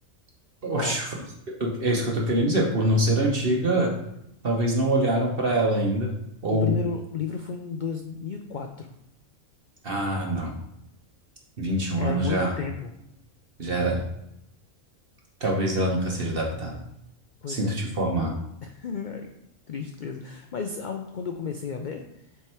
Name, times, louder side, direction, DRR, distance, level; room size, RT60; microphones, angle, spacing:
voice 1, 0.6-1.1 1.6-3.9 4.4-6.1 6.4-6.7 9.8-10.6 11.6-12.5 13.6-14.0 15.4-16.8 17.5-18.3, right 1 dB, 45° right, -1 dB, 1.1 m, -24 dB
voice 2, 6.6-8.9 12.0-12.9 17.4-17.8 18.6-19.3 19.7-22.0, left 5 dB, 60° left, 4 dB, 0.5 m, -33 dB
7.6 x 3.5 x 4.4 m, 0.84 s
omnidirectional pair, 1.4 m